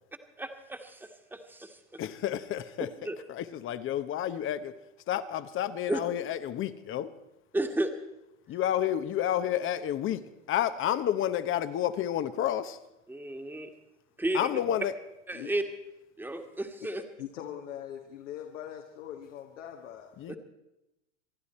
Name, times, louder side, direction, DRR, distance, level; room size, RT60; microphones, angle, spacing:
voice 1, 0.4-1.8 3.0-3.1 5.9-6.0 7.5-7.9 13.1-13.7 14.2-14.4 15.3-15.6 16.2-17.0 20.3-20.4, right 1 dB, 5° right, 6 dB, 1.6 m, -32 dB
voice 2, 2.0-2.9 3.3-4.7 5.1-7.1 8.5-12.8 14.3-14.9 20.2-20.4, left 11 dB, 30° left, 12 dB, 1.0 m, -30 dB
voice 3, 17.2-20.1, left 10 dB, 75° left, 3 dB, 1.7 m, -42 dB
26.0 x 11.0 x 4.3 m, 0.90 s
hypercardioid pair, 105°, 38 cm